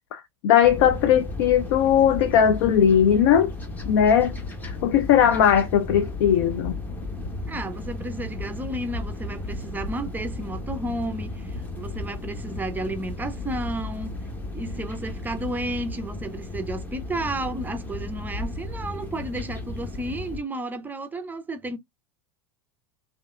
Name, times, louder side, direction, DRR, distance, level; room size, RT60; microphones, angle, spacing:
voice 1, 0.1-3.5 3.9-4.3 4.6-6.7, left 9 dB, 65° left, 0.4 m, -19 dB
sound 1, 0.6-20.4, left 2 dB, 15° left, 0.9 m, -34 dB
voice 2, 7.5-14.2 14.5-21.8, right 1 dB, 15° right, 0.5 m, -32 dB
3.3 x 2.5 x 2.3 m
hypercardioid pair, 105°, 14 cm